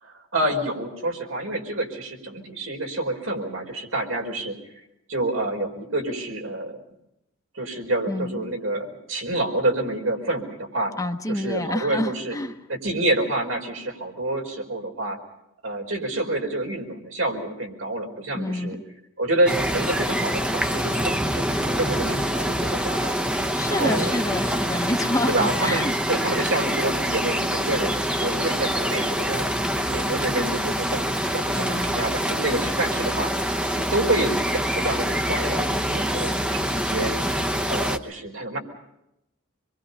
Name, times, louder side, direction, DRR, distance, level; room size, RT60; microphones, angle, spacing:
voice 1, 0.0-4.6 5.1-6.8 7.5-10.9 11.3-12.3 12.7-15.2 15.6-18.8 19.2-23.1 23.4-24.1 25.3-29.4 29.9-33.3 33.7-37.1 37.7-38.6, right 1 dB, 85° right, 2 dB, 5.0 m, -28 dB
voice 2, 8.1-8.4 11.0-12.5 18.3-18.8 23.5-25.9 31.5-31.9, left 1 dB, 15° left, 6 dB, 1.1 m, -28 dB
sound 1, 19.5-38.0, equal, 5° right, 0.9 m, -25 dB
26.5 x 23.0 x 5.6 m, 0.85 s
head